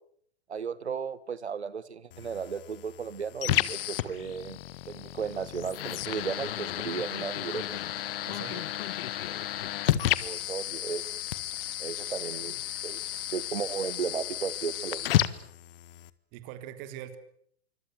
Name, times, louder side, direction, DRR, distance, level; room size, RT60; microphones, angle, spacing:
voice 1, 0.5-4.6 4.9-7.8 10.2-11.1 11.8-15.1, right 6 dB, 85° right, 17 dB, 1.8 m, -35 dB
sound 1, 2.1-16.1, left 13 dB, 60° left, 1.6 m, -32 dB
voice 2, 8.3-8.7 9.5-9.6 16.3-17.2, right 11 dB, 45° right, 9 dB, 3.6 m, -42 dB
26.0 x 24.5 x 7.9 m, 0.67 s
hypercardioid pair, 110°, 32 cm